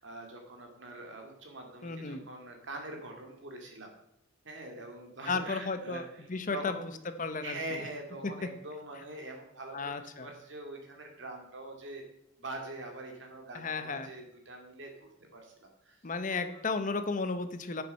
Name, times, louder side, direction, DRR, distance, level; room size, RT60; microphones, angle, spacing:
voice 1, 0.0-3.9 4.4-6.9 7.4-12.0 12.4-16.0 16.3-16.6, right 2 dB, 65° right, 2 dB, 2.3 m, -43 dB
voice 2, 1.8-2.3 5.3-6.7 7.2-7.8 8.2-8.3 9.7-10.3 13.5-14.1 16.0-17.8, left 4 dB, 40° left, 10 dB, 0.7 m, -34 dB
9.4 x 7.1 x 5.5 m, 0.77 s
head